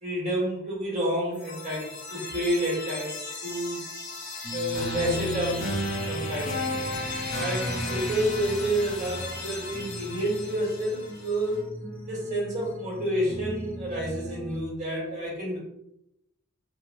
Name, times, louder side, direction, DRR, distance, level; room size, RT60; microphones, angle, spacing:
voice 1, 0.0-3.8 4.5-5.6 6.1-6.6 7.3-11.6 12.1-15.6, right 1 dB, 40° right, -6 dB, 1.5 m, -29 dB
sound 1, 1.3-11.3, left 1 dB, 60° left, 1.0 m, -34 dB
sound 2, 4.4-14.6, right 1 dB, 5° left, 0.4 m, -40 dB
3.2 x 2.4 x 3.0 m, 0.84 s
head